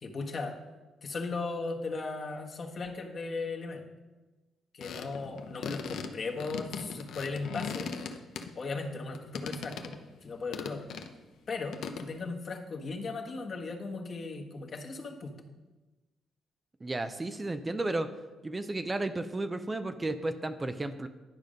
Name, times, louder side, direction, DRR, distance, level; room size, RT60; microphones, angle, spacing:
voice 1, 0.0-0.6 1.0-3.8 4.7-7.9 8.5-9.9 10.2-10.8 11.5-15.3, left 3 dB, 45° left, 1 dB, 1.3 m, -37 dB
sound 1, 4.8-8.8 9.1-10.0 10.5-11.1 11.7-12.1, left 6 dB, 75° left, 0.7 m, -39 dB
voice 2, 16.8-18.1 18.4-21.1, right 2 dB, 20° right, 9 dB, 0.5 m, -33 dB
10.5 x 5.1 x 5.2 m, 1.2 s
cardioid pair, 90°, 0 cm